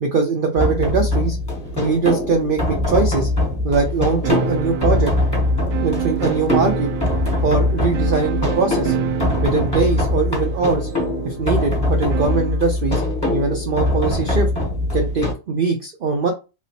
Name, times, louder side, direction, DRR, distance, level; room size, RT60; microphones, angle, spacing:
voice 1, 0.0-1.4 1.8-3.3 3.6-5.1 5.8-6.9 7.4-8.9 9.4-10.9 11.2-13.0 13.3-14.5 14.9-16.3, right 4 dB, 60° right, 3 dB, 0.6 m, -21 dB
sound 1, 0.6-15.3, left 2 dB, 20° left, 1.1 m, -22 dB
sound 2, 4.2-12.6, right 7 dB, 75° right, 0.9 m, -28 dB
3.3 x 2.8 x 2.8 m, 0.29 s
omnidirectional pair, 1.5 m